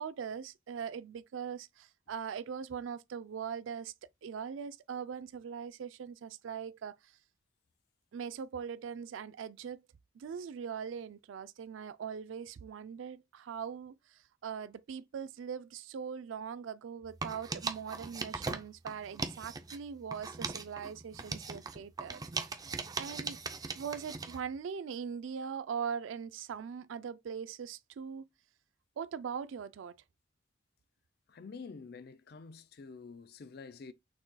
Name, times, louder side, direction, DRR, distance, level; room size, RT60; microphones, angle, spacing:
voice 1, 0.0-3.9 4.2-7.1 8.1-9.8 10.2-22.5 23.0-23.4 23.7-28.3 29.0-30.0, right 7 dB, 80° right, 0.4 m, -41 dB
sound 1, 17.1-19.8 20.1-24.4, right 4 dB, 20° right, 0.4 m, -39 dB
voice 2, 31.3-33.9, left 4 dB, 55° left, 0.4 m, -48 dB
6.1 x 3.9 x 2.2 m
head